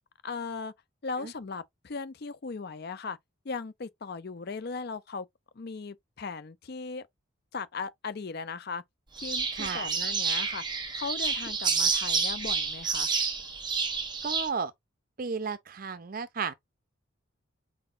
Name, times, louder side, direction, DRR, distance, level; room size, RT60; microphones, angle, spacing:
voice 1, 0.2-0.7 1.0-3.2 3.4-5.3 5.6-7.0 7.5-8.8 9.2-10.6 10.9-13.1, left 4 dB, 50° left, 0.5 m, -37 dB
sound 1, 9.2-14.5, right 5 dB, 20° right, 0.9 m, -29 dB
voice 2, 9.6-9.9 14.2-14.7 15.2-16.5, right 5 dB, 40° right, 0.5 m, -33 dB
4.8 x 3.9 x 2.5 m
head